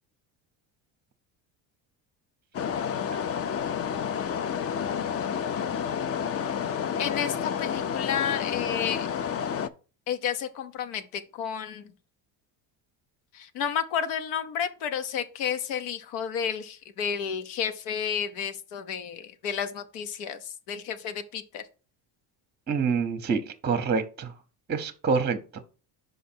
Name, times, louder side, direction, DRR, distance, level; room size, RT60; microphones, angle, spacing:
sound 1, 2.5-9.7, left 8 dB, 30° left, 0.4 m, -30 dB
voice 1, 7.0-9.1 10.1-11.9 13.3-21.6, left 8 dB, 85° left, 0.9 m, -31 dB
voice 2, 22.7-24.3 24.7-25.4, right 5 dB, 20° right, 0.7 m, -26 dB
5.4 x 5.1 x 4.3 m
supercardioid pair, 95°, 47 cm